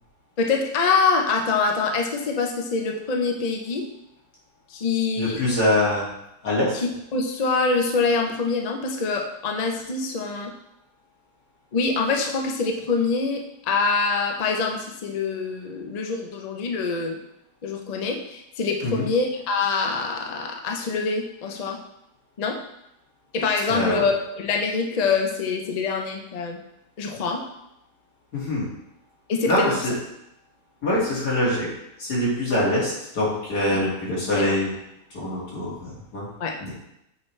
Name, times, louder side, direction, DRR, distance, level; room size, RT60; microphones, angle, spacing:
voice 1, 0.4-3.9 4.7-5.4 6.7-10.5 11.7-17.2 17.6-21.8 22.4-22.6 23.3-26.6 27.0-27.4 29.3-29.8 34.4-34.5 36.4-36.5, left 4 dB, 85° left, 2 dB, 0.3 m, -25 dB
voice 2, 5.2-6.0 6.4-6.7 18.8-19.1 23.7-24.1 28.3-28.7 29.4-29.9 30.8-31.7 32.0-34.7 35.1-36.3 36.6-36.7, left 1 dB, 65° left, -7 dB, 2.7 m, -24 dB
7.1 x 4.6 x 3.2 m, 0.83 s
omnidirectional pair, 1.8 m